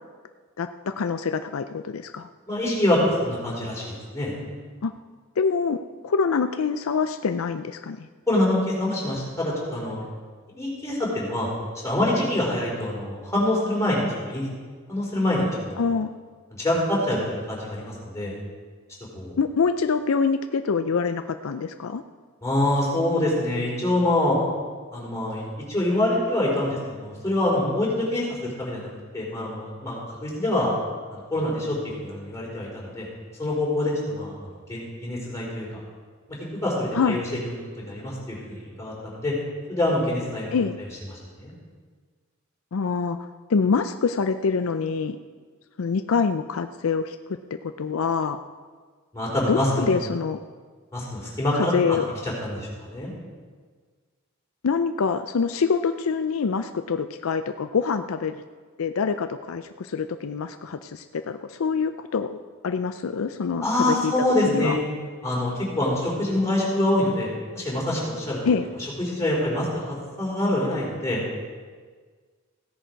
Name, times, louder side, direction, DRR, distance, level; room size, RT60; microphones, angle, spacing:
voice 1, 0.6-2.3 4.8-4.9 5.4-8.1 15.8-16.1 19.4-22.0 36.9-37.2 40.5-40.8 42.7-43.2 43.5-45.2 45.8-47.2 47.8-48.4 49.5-50.4 51.5-52.1 54.6-58.4 58.8-64.1 64.4-64.8 68.5-68.6, left 5 dB, 75° left, 9 dB, 0.5 m, -25 dB
voice 2, 2.5-4.4 8.3-10.0 10.5-11.5 11.8-14.5 14.9-15.8 16.5-18.3 19.1-19.3 22.4-24.4 24.9-30.7 31.1-33.0 33.4-35.7 36.6-39.3 39.7-40.6 41.4-41.5 49.1-50.0 50.9-52.0 52.2-53.1 63.6-64.8 65.2-67.3 67.5-68.4 69.0-71.2, left 1 dB, 15° left, -5 dB, 4.3 m, -25 dB
16.0 x 10.0 x 4.6 m, 1.5 s
head